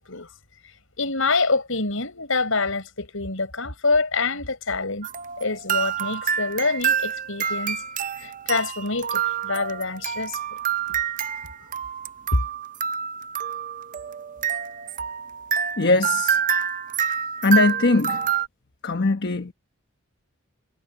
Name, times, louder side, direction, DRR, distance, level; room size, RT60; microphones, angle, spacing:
voice 1, 1.0-5.1 5.4-7.8 8.1-10.4 11.6-11.7 12.3-12.5, left 3 dB, 70° left, 6.5 m, -26 dB
sound 1, 5.0-18.5, right 8 dB, 40° right, 0.6 m, -27 dB
voice 2, 15.8-16.4 17.4-18.3 18.8-19.5, left 3 dB, 55° left, 1.1 m, -20 dB
head